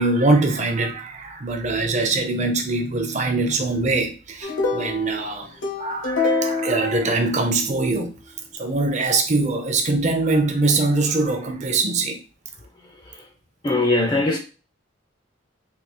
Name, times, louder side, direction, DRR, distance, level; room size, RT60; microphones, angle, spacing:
voice 1, 0.0-5.5 5.8-8.1 8.6-12.2, right 3 dB, 35° right, 0.5 m, -22 dB
sound 1, 4.4-7.8, left 3 dB, 75° left, 0.7 m, -26 dB
voice 2, 13.6-14.4, left 2 dB, 20° left, 0.4 m, -20 dB
3.4 x 2.3 x 2.9 m
head